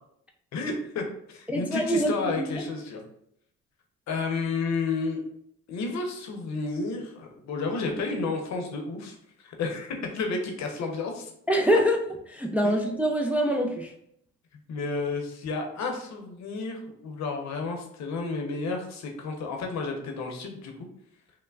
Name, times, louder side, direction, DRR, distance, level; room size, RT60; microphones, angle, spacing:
voice 1, 0.5-1.0 1.3-3.0 4.1-5.2 5.7-11.3 12.6-12.8 14.7-20.7, left 4 dB, 65° left, 3 dB, 0.7 m, -31 dB
voice 2, 1.5-2.1 2.4-2.6 11.5-12.0 12.3-13.9, equal, 5° right, 2 dB, 0.3 m, -24 dB
3.1 x 2.1 x 2.3 m, 0.72 s
supercardioid pair, 65°, 30 cm